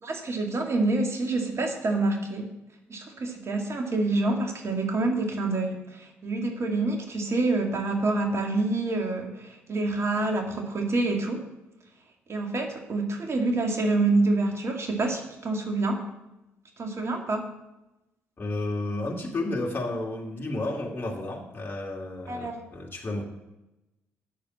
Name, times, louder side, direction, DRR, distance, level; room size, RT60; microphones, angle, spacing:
voice 1, 0.0-2.5 2.9-11.4 12.3-16.0 16.8-17.4 22.3-22.6, right 2 dB, 45° right, 3 dB, 2.2 m, -27 dB
voice 2, 18.4-23.2, left 2 dB, 30° left, -2 dB, 2.8 m, -32 dB
8.6 x 6.8 x 8.4 m, 0.94 s
hypercardioid pair, 45°, 6 cm